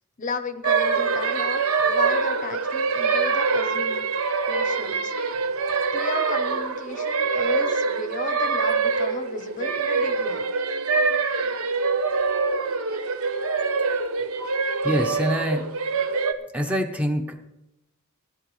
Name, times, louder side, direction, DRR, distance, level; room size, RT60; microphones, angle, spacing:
voice 1, 0.2-1.6 1.9-4.0 4.5-5.1 5.9-10.5, left 3 dB, 35° left, 9 dB, 0.7 m, -34 dB
sound 1, 0.6-16.3, right 4 dB, 75° right, 0.9 m, -24 dB
voice 2, 14.8-15.7 16.5-17.4, equal, 5° right, 5 dB, 0.7 m, -25 dB
19.0 x 11.0 x 3.2 m, 0.91 s
head